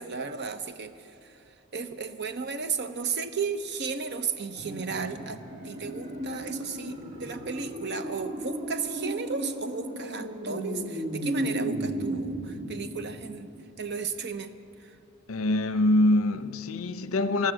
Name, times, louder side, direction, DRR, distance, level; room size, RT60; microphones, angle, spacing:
voice 1, 0.0-1.4 1.7-13.5 13.8-14.5 14.8-15.0, right 5 dB, 55° right, 0.7 m, -34 dB
sound 1, 4.5-13.7 14.0-14.1, right 1 dB, 35° right, 1.7 m, -35 dB
voice 2, 15.3-17.5, left 1 dB, 75° left, 0.6 m, -24 dB
14.0 x 11.5 x 7.6 m
head